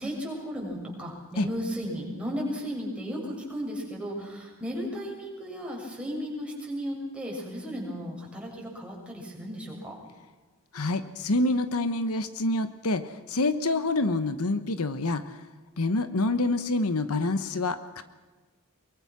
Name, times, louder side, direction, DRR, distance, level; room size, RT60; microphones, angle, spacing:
voice 1, 0.0-10.0, equal, 5° right, -2 dB, 6.7 m, -35 dB
voice 2, 10.7-15.4 15.8-18.0, left 2 dB, 70° left, 11 dB, 1.2 m, -27 dB
23.5 x 23.5 x 6.2 m, 1.3 s
head